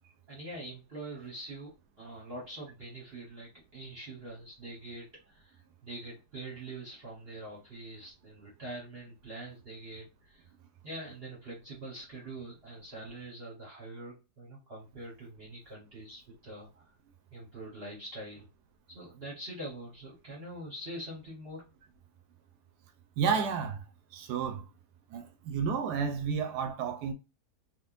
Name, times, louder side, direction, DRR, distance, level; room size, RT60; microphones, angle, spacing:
voice 1, 0.3-1.7 2.0-10.5 10.8-16.8 17.3-18.5 18.9-21.6, right 1 dB, 40° right, 1.2 m, -44 dB
voice 2, 23.2-23.8 24.1-24.6 25.1-27.1, right 6 dB, 85° right, 1.2 m, -31 dB
3.6 x 2.9 x 2.4 m
omnidirectional pair, 1.7 m